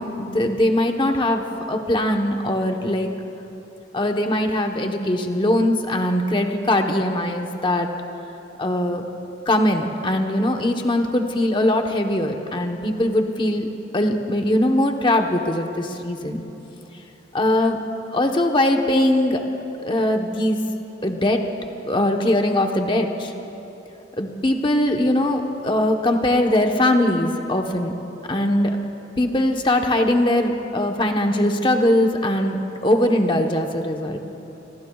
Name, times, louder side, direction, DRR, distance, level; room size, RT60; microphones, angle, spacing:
voice 1, 0.0-3.1 3.9-7.9 8.6-9.0 9.5-13.7 13.9-16.4 17.3-17.8 18.1-19.4 19.8-20.6 21.0-21.4 21.8-23.3 24.2-27.9 28.3-28.8 29.2-34.2, left 1 dB, 25° left, 3 dB, 1.0 m, -21 dB
26.5 x 22.0 x 2.4 m, 2.9 s
head